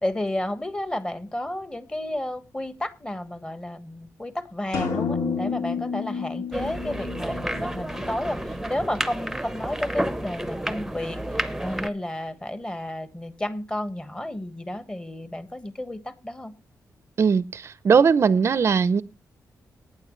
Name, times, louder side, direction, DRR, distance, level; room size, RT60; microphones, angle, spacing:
voice 1, 0.0-16.5, left 1 dB, 15° left, 1.4 m, -32 dB
sound 1, 4.7-8.5, left 5 dB, 75° left, 2.8 m, -30 dB
sound 2, 6.5-11.9, right 1 dB, 5° right, 0.9 m, -31 dB
voice 2, 17.2-19.0, right 6 dB, 45° right, 0.6 m, -19 dB
18.5 x 9.5 x 3.1 m
cardioid pair, 110°, 6 cm